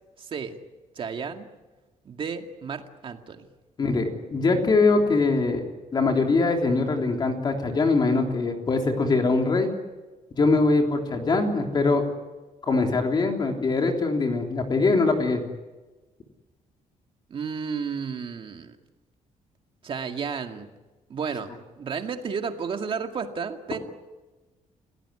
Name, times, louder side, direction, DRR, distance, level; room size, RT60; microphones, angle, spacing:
voice 1, 0.2-0.5 1.0-1.5 2.1-3.5 17.3-18.8 19.8-20.7 21.1-23.8, right 6 dB, 40° right, 5 dB, 2.1 m, -32 dB
voice 2, 3.8-5.6 5.9-9.7 10.4-12.0 12.6-15.4, left 3 dB, 35° left, 3 dB, 3.4 m, -22 dB
29.5 x 18.0 x 10.0 m, 1.2 s
cardioid pair, 160°, 13 cm